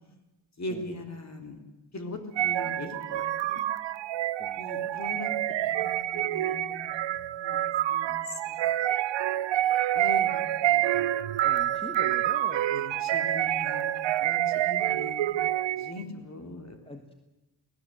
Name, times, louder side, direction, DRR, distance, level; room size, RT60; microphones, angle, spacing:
voice 1, 0.6-1.6 1.9-3.6 4.6-5.3 5.6-8.6 9.9-10.8 12.7-15.3 15.7-16.8, left 2 dB, 40° left, 5 dB, 3.9 m, -41 dB
sound 1, 2.4-16.0, right 13 dB, 85° right, 0.8 m, -27 dB
voice 2, 4.4-4.9 11.4-12.7 16.8-17.1, left 1 dB, 15° left, 6 dB, 1.6 m, -43 dB
29.0 x 18.0 x 8.0 m, 1.1 s
cardioid pair, 110°, 43 cm